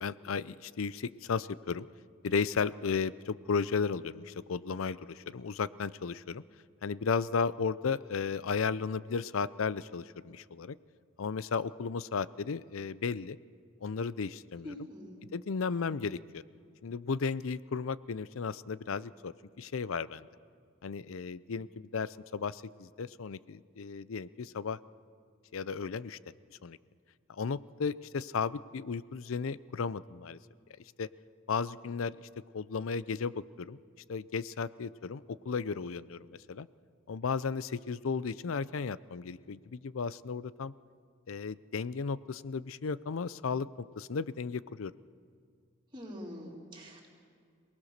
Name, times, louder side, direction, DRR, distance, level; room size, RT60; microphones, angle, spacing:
voice 1, 0.0-1.9 2.2-6.4 6.8-10.8 11.2-13.4 13.8-14.7 15.3-16.4 16.8-20.3 20.8-24.8 25.5-26.2 26.6-26.8 27.3-30.4 31.0-31.1 31.5-32.2 32.5-33.8 34.1-36.7 37.1-40.7 41.3-44.9, left 5 dB, 85° left, 18 dB, 0.5 m, -34 dB
voice 2, 14.6-15.2 45.9-47.1, equal, 25° right, -3 dB, 3.9 m, -44 dB
26.5 x 19.0 x 6.6 m, 2.2 s
head